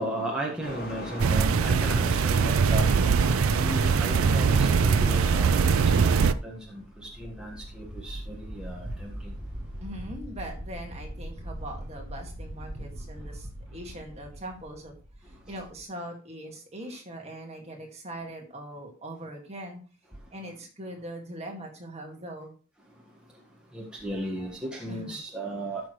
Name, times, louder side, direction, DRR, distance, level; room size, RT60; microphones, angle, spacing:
voice 1, 0.0-2.9 3.6-6.8 7.2-9.3 23.7-25.8, right 1 dB, 5° right, 1.5 m, -35 dB
sound 1, 0.6-6.3, equal, 45° left, 4.0 m, -37 dB
sound 2, 1.2-6.3, right 6 dB, 90° right, 0.4 m, -22 dB
sound 3, 6.6-15.8, right 1 dB, 50° right, 4.3 m, -42 dB
voice 2, 9.8-14.9 15.2-19.8 20.3-22.6 24.9-25.2, right 1 dB, 30° right, 2.0 m, -41 dB
13.0 x 6.2 x 3.2 m
head